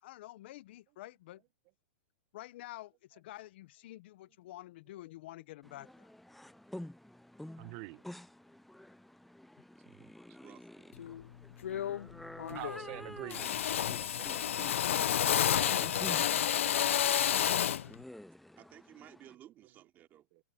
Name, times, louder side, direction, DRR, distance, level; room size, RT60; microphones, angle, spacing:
voice 1, 0.0-1.4 2.3-6.1, left 16 dB, 60° left, 0.8 m, -49 dB
sound 1, 5.6-19.4, left 1 dB, ahead, 0.3 m, -50 dB
voice 2, 7.6-8.0 10.0-10.1 12.5-14.7 15.6-16.3 20.3-20.4, right 23 dB, 45° right, 0.8 m, -47 dB
Drill, 11.0-11.2 11.6-12.1 12.4-13.0 13.3-17.9, left 10 dB, 90° left, 0.3 m, -30 dB
voice 3, 17.0-17.7 18.5-20.3, right 12 dB, 30° right, 3.1 m, -55 dB
hypercardioid pair, 140°, 7 cm